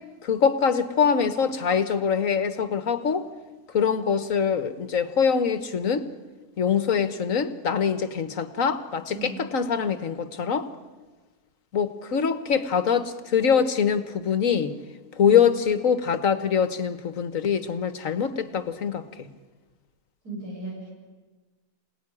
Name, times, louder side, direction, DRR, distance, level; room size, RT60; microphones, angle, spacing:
voice 1, 0.2-3.3 3.7-6.1 6.6-10.7 11.7-14.7 15.2-19.3, left 7 dB, 60° left, 12 dB, 1.6 m, -24 dB
voice 2, 9.1-9.5 15.2-15.4 20.2-20.9, right 2 dB, 90° right, -3 dB, 8.5 m, -36 dB
27.0 x 19.0 x 9.9 m, 1.3 s
omnidirectional pair, 1.6 m